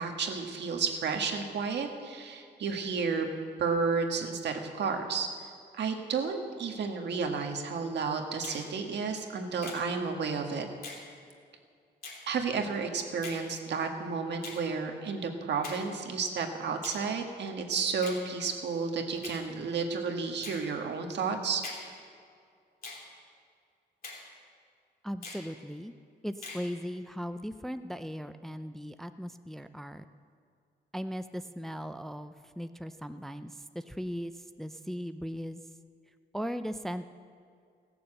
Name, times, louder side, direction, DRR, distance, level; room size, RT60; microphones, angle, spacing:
voice 1, 0.0-3.3 3.6-5.3 5.7-10.7 12.3-21.6, right 5 dB, 75° right, 3 dB, 1.5 m, -32 dB
Finger snapping, 8.4-8.7 9.6-9.8 10.8-11.1 12.0-12.2 13.2-13.4 14.4-14.6 15.6-15.9 16.8-17.0 18.0-18.2 19.2-19.4 20.4-20.6 21.6-21.9 22.8-23.0 24.0-24.2 25.2-25.5 26.4-26.7, left 4 dB, 55° left, 3.0 m, -43 dB
voice 2, 25.0-25.9 26.2-30.1 30.9-34.3 34.6-35.6 36.3-37.0, equal, ahead, 10 dB, 0.4 m, -38 dB
17.0 x 6.9 x 7.7 m, 2.3 s
cardioid pair, 95°, 18 cm